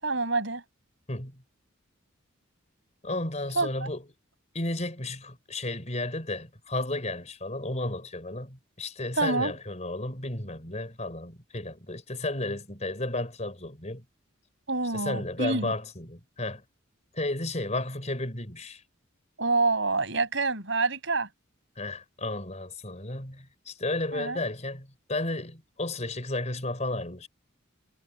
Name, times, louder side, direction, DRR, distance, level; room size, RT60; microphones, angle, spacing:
voice 1, 0.0-0.6 3.6-3.9 9.2-9.5 14.7-15.7 19.4-21.3 24.1-24.4, right 3 dB, 60° right, 7.8 m, -27 dB
voice 2, 1.1-1.4 3.0-4.0 4.5-14.0 14.9-16.6 17.1-18.8 21.8-27.3, left 2 dB, 35° left, 4.8 m, -33 dB
head